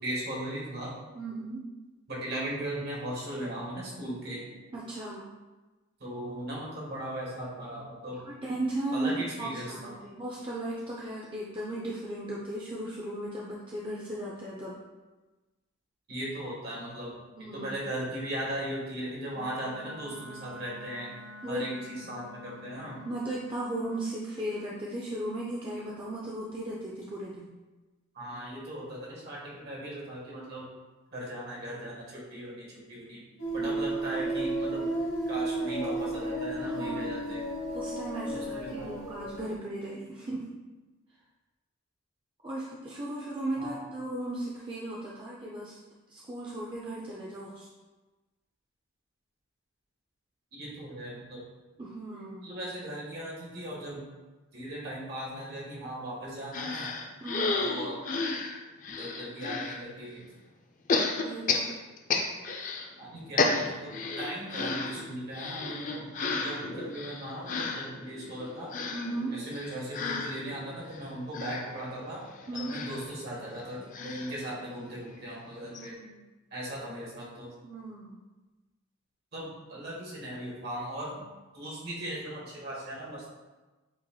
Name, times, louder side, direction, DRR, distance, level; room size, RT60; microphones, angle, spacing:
voice 1, 0.0-0.9 2.1-4.4 6.0-8.2 8.9-9.9 16.1-17.1 17.5-21.1 21.5-23.0 28.1-30.7 31.1-33.2 33.5-34.8 35.3-37.4 38.3-38.9 43.6-43.8 50.5-51.4 52.4-54.1 54.5-56.9 57.6-58.0 59.0-60.3 63.0-68.7 69.3-72.2 72.5-76.0 76.5-77.5 79.3-81.3 81.5-83.3, right 1 dB, 50° right, -5 dB, 1.4 m, -38 dB
voice 2, 1.1-1.6 4.7-5.3 8.1-14.8 17.3-17.7 21.4-21.6 23.0-27.5 33.6-33.8 36.6-37.3 37.7-40.5 42.4-45.8 46.1-47.7 51.8-52.5 57.2-57.6 61.2-61.7 68.9-69.4 72.5-72.8 74.5-74.6 75.7-76.2 77.6-78.2, right 1 dB, 25° right, -5 dB, 0.5 m, -36 dB
Wind instrument woodwind instrument, 19.3-24.1, left 2 dB, 90° left, 0.7 m, -48 dB
sound 1, 33.4-39.5, right 2 dB, 65° left, 1.0 m, -33 dB
sound 2, 56.5-59.8 60.9-62.9 63.1-75.1 75.4-75.5 75.7-75.9, left 3 dB, 40° left, 0.4 m, -33 dB
7.6 x 2.9 x 2.3 m, 1.2 s
head